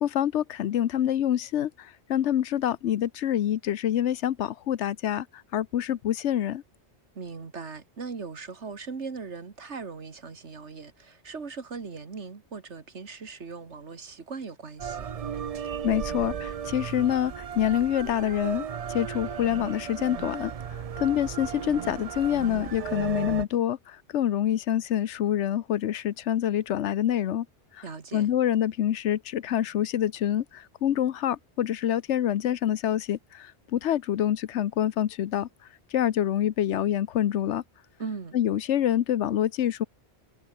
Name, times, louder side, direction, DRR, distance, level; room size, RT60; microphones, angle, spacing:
voice 1, 0.0-5.3 5.5-6.6 15.8-27.5 27.8-27.9 28.1-35.5 35.9-37.6 38.3-39.9, left 11 dB, 85° left, 1.0 m, -26 dB
voice 2, 7.2-15.1 27.8-28.3 38.0-38.4, right 4 dB, 85° right, 2.2 m, -39 dB
sound 1, 14.8-23.5, right 7 dB, 45° right, 0.5 m, -35 dB
omnidirectional pair, 1.2 m